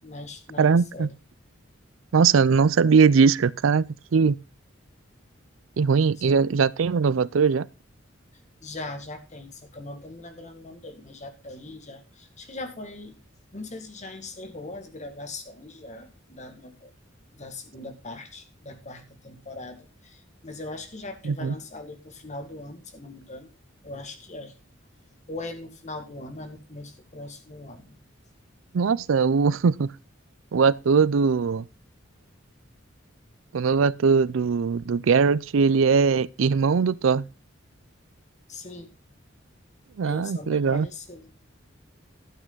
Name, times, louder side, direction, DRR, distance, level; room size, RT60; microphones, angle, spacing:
voice 1, 0.0-1.2 6.1-6.4 8.6-13.2 13.5-16.9 17.3-23.5 23.8-24.5 25.3-28.0 38.5-38.9 40.0-41.3, left 2 dB, 35° left, 2.0 m, -40 dB
voice 2, 0.6-1.1 2.1-4.4 5.8-7.7 21.3-21.5 28.7-29.9 30.5-31.7 33.5-37.2 40.0-40.9, right 5 dB, 85° right, 0.4 m, -20 dB
12.5 x 8.8 x 3.9 m
head